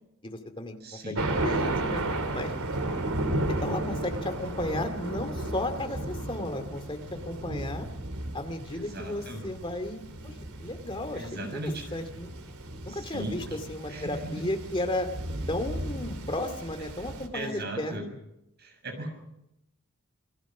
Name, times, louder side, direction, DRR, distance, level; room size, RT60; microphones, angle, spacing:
voice 1, 0.2-2.0 2.3-2.5 3.5-7.9 8.3-10.3 10.6-12.3 12.8-15.1 15.5-18.0, left 1 dB, 25° left, 7 dB, 2.3 m, -34 dB
voice 2, 0.8-1.2 8.7-9.4 11.1-12.0 12.9-13.6 13.9-14.4 17.3-18.0 18.6-19.1, right 1 dB, 50° right, 5 dB, 7.0 m, -37 dB
Thunder, 1.2-17.3, right 1 dB, 80° right, 3.2 m, -34 dB
28.5 x 21.5 x 6.2 m, 0.86 s
head